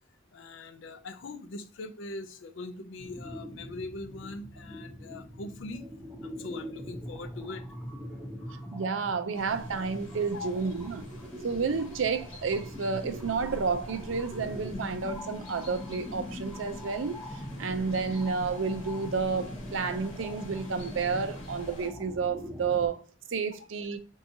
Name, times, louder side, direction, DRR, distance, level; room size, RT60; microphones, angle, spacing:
voice 1, 0.3-5.9 6.2-7.6 10.3-10.5, left 2 dB, 70° left, 0.5 m, -41 dB
sound 1, 3.0-22.9, equal, 5° right, 0.8 m, -42 dB
voice 2, 8.7-11.0 11.4-17.2 17.6-23.0 23.3-24.0, right 5 dB, 85° right, 0.5 m, -31 dB
sound 2, 9.3-21.9, left 1 dB, 85° left, 1.3 m, -48 dB
4.6 x 2.7 x 2.7 m
head